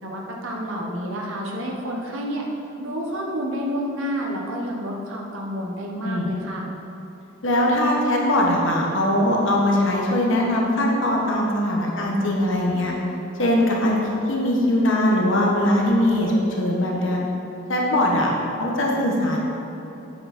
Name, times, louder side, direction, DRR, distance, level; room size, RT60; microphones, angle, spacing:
voice 1, 0.0-2.5 2.8-6.7, equal, 80° right, -1 dB, 1.2 m, -29 dB
voice 2, 7.4-12.9 13.4-17.2 17.7-18.3 18.6-19.4, left 1 dB, 70° left, -2 dB, 1.4 m, -21 dB
8.7 x 7.8 x 4.3 m, 3.0 s
head